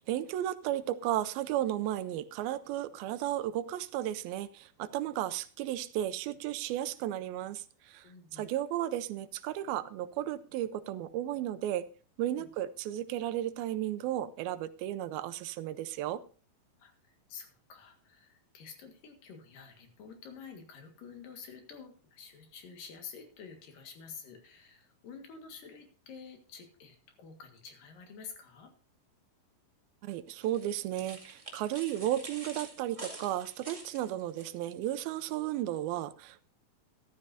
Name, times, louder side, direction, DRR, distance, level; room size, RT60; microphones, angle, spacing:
voice 1, 0.0-11.9 12.2-16.2 30.0-36.5, right 12 dB, 85° right, 14 dB, 2.4 m, -34 dB
voice 2, 8.0-8.5 12.3-12.5 16.8-16.9 17.3-28.7, left 6 dB, 65° left, 4 dB, 3.3 m, -49 dB
sound 1, 30.4-34.5, right 2 dB, 20° right, 1.0 m, -47 dB
14.0 x 12.0 x 2.7 m, 0.38 s
omnidirectional pair, 4.3 m